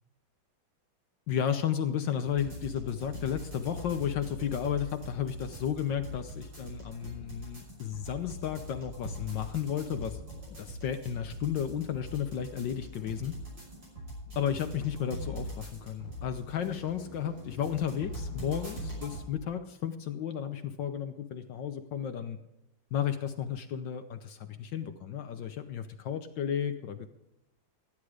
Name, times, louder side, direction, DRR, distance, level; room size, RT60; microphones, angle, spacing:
voice 1, 1.3-10.2 10.6-13.4 14.4-22.4 22.9-27.1, left 9 dB, 70° left, 7 dB, 1.4 m, -33 dB
sound 1, 2.3-19.3, equal, 60° right, 6.7 m, -42 dB
13.5 x 10.5 x 4.8 m, 0.89 s
omnidirectional pair, 2.2 m